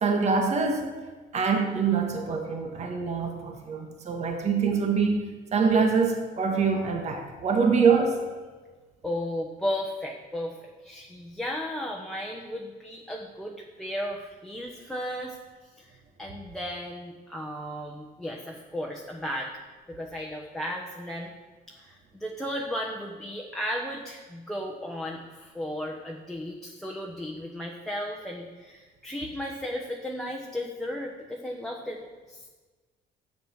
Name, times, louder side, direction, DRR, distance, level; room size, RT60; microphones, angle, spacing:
voice 1, 0.0-0.9 1.3-5.2 5.5-8.2, right 5 dB, 40° right, 3 dB, 1.6 m, -24 dB
voice 2, 9.0-15.4 15.8-15.9 16.2-19.5 19.9-21.3 21.7-32.5, equal, 5° left, -1 dB, 1.2 m, -35 dB
10.5 x 8.0 x 6.5 m, 1.3 s
cardioid pair, 110°, 17 cm